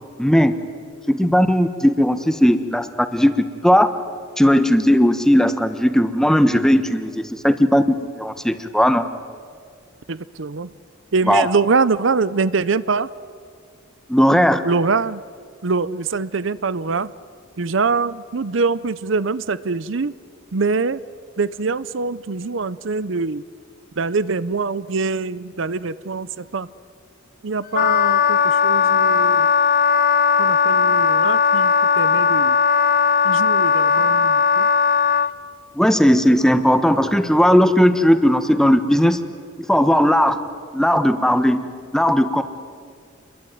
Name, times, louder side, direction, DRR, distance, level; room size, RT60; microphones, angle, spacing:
voice 1, 0.2-0.6 1.1-3.9 4.4-9.0 11.3-11.5 14.1-14.6 35.7-39.2 39.7-40.4 40.7-41.6 41.9-42.4, equal, 5° left, 9 dB, 1.2 m, -17 dB
voice 2, 10.1-10.7 11.1-13.1 14.6-15.2 15.6-17.1 17.6-20.1 20.5-21.0 21.4-23.4 24.0-26.7 27.4-29.5 30.4-32.6 33.2-34.7, right 4 dB, 65° right, 17 dB, 0.6 m, -23 dB
Wind instrument woodwind instrument, 27.7-35.3, left 5 dB, 45° left, 0.7 m, -17 dB
28.5 x 22.0 x 9.4 m, 2.1 s
head